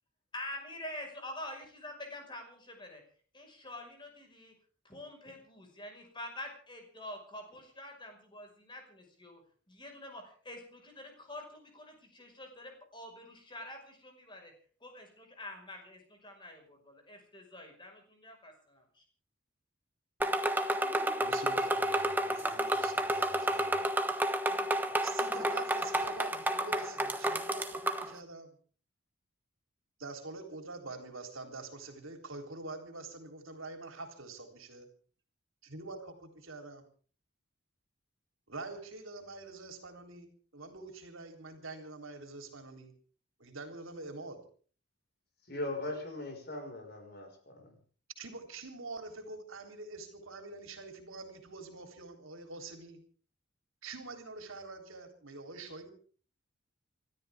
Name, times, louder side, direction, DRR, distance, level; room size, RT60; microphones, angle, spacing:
voice 1, 0.3-3.0 3.3-4.5 4.8-9.4 9.7-14.5 14.8-19.0, left 1 dB, 25° left, 3 dB, 5.6 m, -46 dB
sound 1, 20.2-28.1, right 1 dB, 10° right, 1.2 m, -31 dB
voice 2, 21.2-23.9 25.0-28.6 30.0-34.9 35.6-36.8 38.5-42.9 43.4-44.4 48.2-53.0 53.8-55.9, right 3 dB, 75° right, 5 dB, 3.8 m, -46 dB
voice 3, 45.5-47.7, left 2 dB, 50° left, 4 dB, 5.5 m, -39 dB
29.0 x 13.5 x 3.7 m, 0.42 s
head